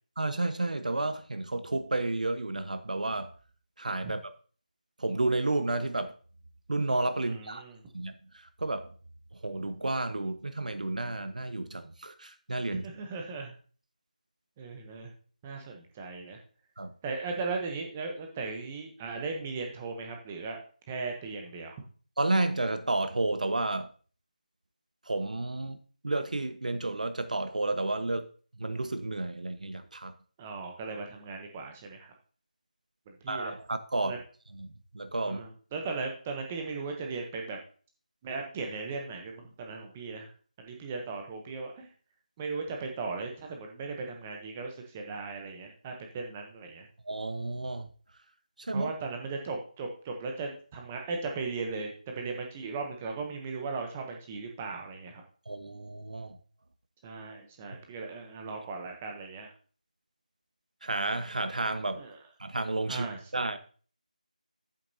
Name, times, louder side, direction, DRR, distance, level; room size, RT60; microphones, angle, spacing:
voice 1, 0.2-3.3 3.8-4.3 5.0-6.1 6.7-7.6 7.9-8.2 8.6-8.9 9.4-12.8 16.8-16.9 22.2-23.9 25.1-28.3 28.6-30.1 33.3-34.2 34.5-35.4 47.1-47.9 48.6-48.9 55.5-56.4 60.8-62.0 62.4-63.1 63.3-63.6, right 2 dB, 65° right, 10 dB, 1.1 m, -31 dB
voice 2, 7.2-7.8 12.7-13.5 14.6-15.1 15.4-16.4 17.0-20.6 20.9-21.8 30.4-32.1 33.2-33.5 34.0-34.2 35.2-37.6 38.2-40.3 40.6-41.9 42.4-46.9 48.7-55.2 57.0-59.5 61.9-62.2 62.9-63.2, right 4 dB, 10° right, 2 dB, 0.7 m, -37 dB
9.7 x 8.8 x 2.7 m, 0.40 s
figure-of-eight pair, 175°, 4 cm